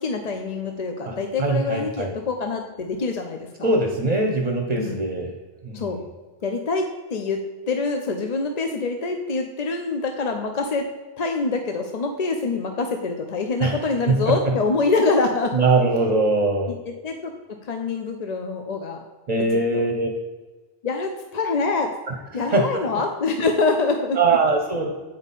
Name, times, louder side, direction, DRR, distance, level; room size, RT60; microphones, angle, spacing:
voice 1, 0.0-3.7 4.8-5.0 5.7-6.0 6.4-7.4 7.7-10.9 11.2-15.6 16.7-19.0 19.7-19.8 20.8-21.9 22.3-24.2, left 3 dB, 50° left, 5 dB, 0.6 m, -25 dB
voice 2, 1.1-2.1 3.6-5.3 5.6-5.8 13.6-13.8 14.1-14.2 15.5-16.7 19.3-20.1 22.5-22.7 24.2-24.9, right 3 dB, 45° right, 2 dB, 0.8 m, -21 dB
8.2 x 5.4 x 4.1 m, 1.3 s
omnidirectional pair, 1.0 m